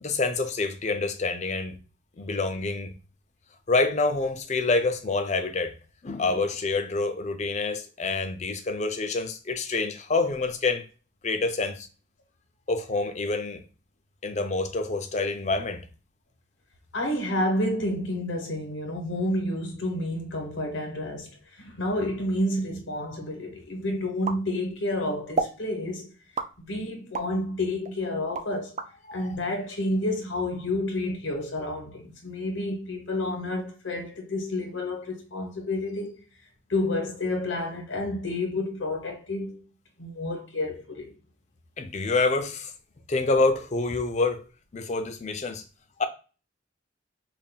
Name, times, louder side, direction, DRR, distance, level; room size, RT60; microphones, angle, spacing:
voice 1, 0.0-1.8 2.2-2.9 3.7-5.7 6.0-10.9 11.2-11.9 12.7-13.6 14.2-15.8 29.1-29.4 41.8-42.7 43.1-44.5 44.7-45.6 46.0-46.1, left 3 dB, 35° left, 0.5 m, -27 dB
voice 2, 16.9-26.1 26.7-28.7 29.1-36.2 36.7-39.6 40.0-41.1, left 1 dB, 75° left, 1.1 m, -30 dB
sound 1, 24.2-24.9 25.3-25.6 26.3-27.3 27.8-28.9, right 4 dB, 35° right, 0.4 m, -31 dB
5.4 x 2.6 x 2.3 m
head